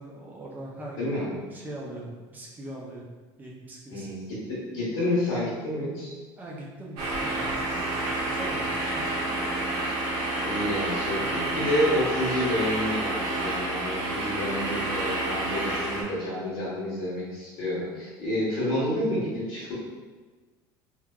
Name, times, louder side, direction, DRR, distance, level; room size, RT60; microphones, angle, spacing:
voice 1, 0.0-3.0 3.4-4.1 6.4-9.3 11.2-11.6, right 1 dB, 15° right, -3 dB, 0.5 m, -41 dB
voice 2, 4.5-6.1 10.1-19.7, left 1 dB, 50° left, -9 dB, 1.0 m, -29 dB
sound 1, 7.0-16.0, right 2 dB, 70° right, 0.8 m, -29 dB
3.2 x 2.2 x 2.3 m, 1.3 s
cardioid pair, 155°, 11 cm